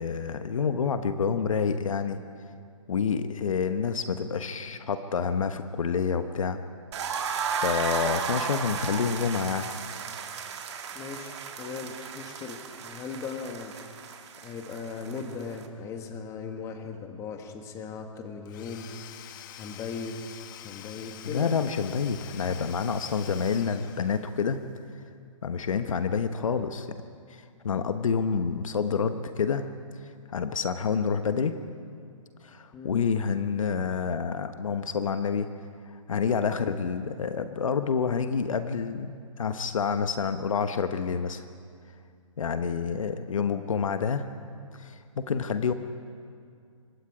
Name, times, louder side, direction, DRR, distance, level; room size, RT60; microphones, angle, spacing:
voice 1, 0.0-2.2 2.9-6.6 7.6-9.7 21.2-24.6 25.4-26.9 27.3-29.7 30.3-31.5 32.4-35.5 36.1-41.4 42.4-44.3 44.7-45.7, left 6 dB, 70° left, 9 dB, 1.1 m, -28 dB
sound 1, 6.9-15.7, right 6 dB, 55° right, 2.1 m, -34 dB
voice 2, 10.9-13.7 14.4-18.9 19.6-20.2 20.5-21.6 32.7-33.0, left 5 dB, 15° left, 5 dB, 1.7 m, -38 dB
Domestic sounds home sounds / Tools, 18.5-24.6, left 10 dB, 35° left, 1.2 m, -46 dB
25.0 x 21.5 x 5.0 m, 2.3 s
hypercardioid pair, 145°, 17 cm